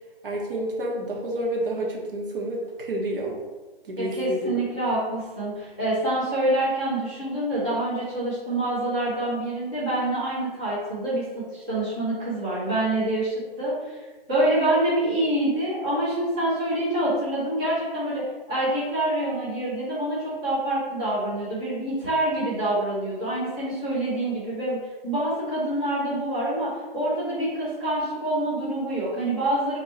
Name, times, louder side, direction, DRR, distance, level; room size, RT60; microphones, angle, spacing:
voice 1, 0.2-3.4 3.9-4.7, right 1 dB, 60° right, -2 dB, 1.0 m, -29 dB
voice 2, 4.0-14.0 14.3-24.8 25.0-29.8, right 1 dB, 10° right, -10 dB, 0.4 m, -26 dB
2.9 x 2.6 x 4.2 m, 1.2 s
hypercardioid pair, 160°, 30 cm